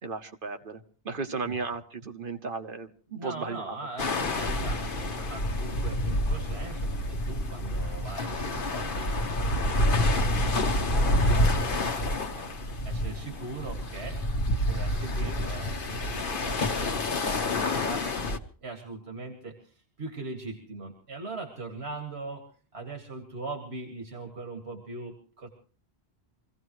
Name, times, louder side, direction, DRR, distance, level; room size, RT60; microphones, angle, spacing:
voice 1, 0.0-3.8, right 4 dB, 55° right, 7 dB, 1.2 m, -35 dB
voice 2, 3.2-11.3 11.8-18.3 18.6-22.5 22.7-25.5, right 3 dB, 80° right, 4 dB, 2.3 m, -41 dB
sound 1, 4.0-18.4, left 1 dB, 55° left, 1.2 m, -28 dB
25.0 x 16.5 x 3.1 m, 0.40 s
omnidirectional pair, 1.1 m